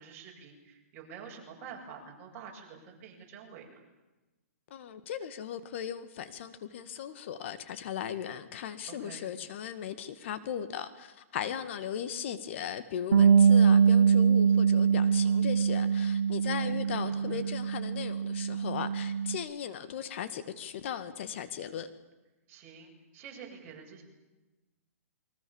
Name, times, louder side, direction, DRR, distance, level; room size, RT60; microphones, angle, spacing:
voice 1, 0.0-3.8 8.9-9.3 16.6-17.4 22.5-24.0, right 6 dB, 30° right, 0 dB, 7.6 m, -48 dB
voice 2, 4.7-21.9, left 9 dB, 50° left, 12 dB, 2.0 m, -37 dB
Bass guitar, 13.1-19.4, right 6 dB, 80° right, 2.0 m, -24 dB
29.0 x 23.5 x 7.3 m, 1.1 s
hypercardioid pair, 150°, 8 cm